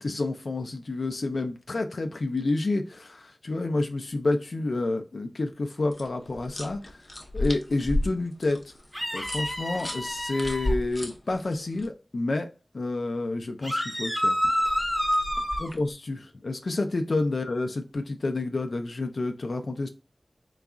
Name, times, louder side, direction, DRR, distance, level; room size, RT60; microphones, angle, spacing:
voice 1, 0.0-7.0 7.3-8.7 9.1-14.4 15.6-19.9, left 2 dB, 70° left, 0.4 m, -29 dB
sound 1, 5.9-11.9 14.4-15.9, left 1 dB, 30° left, 0.7 m, -34 dB
Multiple Female Screams, 8.9-10.7 13.6-15.7, equal, 5° right, 1.0 m, -28 dB
3.9 x 2.3 x 3.5 m
wide cardioid pair, 75°, 0 cm